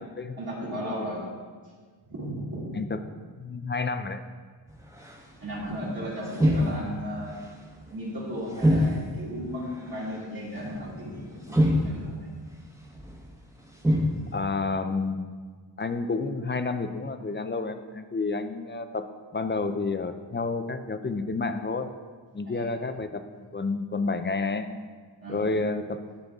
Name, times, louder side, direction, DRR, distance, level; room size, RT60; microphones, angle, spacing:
voice 1, 0.4-1.2 2.1-2.8 5.4-7.4 7.9-12.3 22.5-22.7 25.2-25.4, equal, 50° right, -8 dB, 2.5 m, -35 dB
voice 2, 3.4-4.2 14.3-15.4 15.8-21.9 22.3-24.7 25.3-26.0, left 3 dB, 25° left, 9 dB, 0.4 m, -30 dB
sound 1, 4.7-5.8 6.2-7.4 7.7-7.9 8.5-9.3 9.6-10.2 10.9-11.0 11.5-12.3 12.9-13.3 13.7-14.4, equal, 5° right, 1.0 m, -26 dB
12.0 x 6.9 x 3.5 m, 1.5 s
wide cardioid pair, 140°, 46 cm